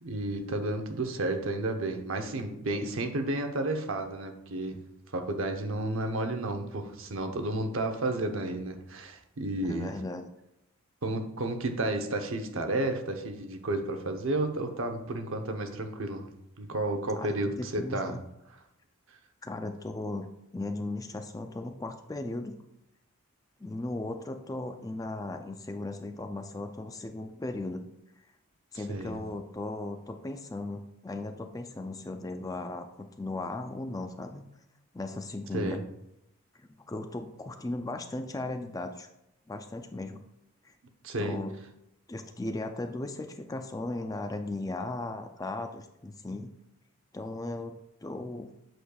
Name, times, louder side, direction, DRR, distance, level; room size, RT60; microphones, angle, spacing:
voice 1, 0.0-4.8 5.1-9.9 11.0-16.2 16.6-18.2 28.9-29.2 35.5-35.8 41.0-41.4, right 2 dB, 65° right, 5 dB, 0.8 m, -32 dB
voice 2, 9.7-10.3 17.1-18.2 19.4-20.3 20.5-22.6 23.6-27.8 28.7-34.5 34.9-35.8 36.9-39.1 39.5-40.2 40.6-40.7 41.2-41.5 42.1-46.5 47.1-48.5, left 2 dB, 15° left, 6 dB, 0.3 m, -37 dB
7.8 x 6.4 x 2.3 m, 0.85 s
head